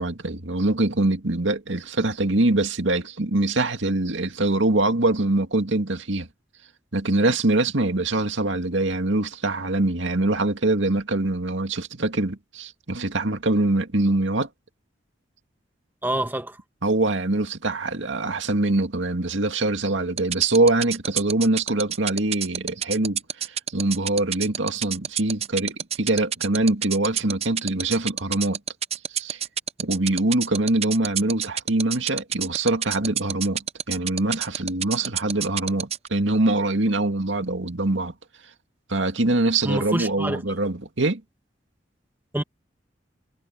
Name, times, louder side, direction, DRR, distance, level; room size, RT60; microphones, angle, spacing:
voice 1, 0.0-6.3 6.9-14.5 16.8-28.6 29.1-29.4 29.8-38.1 38.9-41.2, right 2 dB, 80° right, 2.2 m, -24 dB
voice 2, 16.0-16.6 39.6-40.6 42.3-42.4, right 1 dB, 10° right, 1.4 m, -27 dB
sound 1, 20.2-36.1, right 9 dB, 35° right, 0.6 m, -26 dB
head